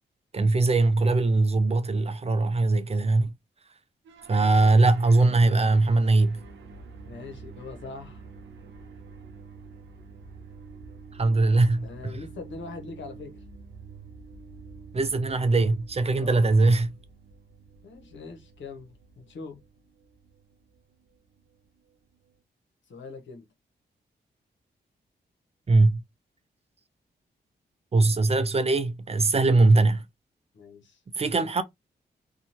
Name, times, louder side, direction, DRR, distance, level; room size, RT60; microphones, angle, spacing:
voice 1, 0.3-3.3 4.3-6.4 11.2-12.1 14.9-16.9 25.7-26.0 27.9-30.0 31.2-31.6, right 3 dB, 35° right, 0.5 m, -21 dB
sound 1, 4.0-22.4, right 4 dB, 85° right, 0.6 m, -48 dB
voice 2, 7.0-8.3 11.8-13.4 16.1-16.4 17.8-19.6 22.9-23.5 30.5-31.0, left 4 dB, 75° left, 0.9 m, -42 dB
2.6 x 2.3 x 2.9 m
cardioid pair, 50°, 19 cm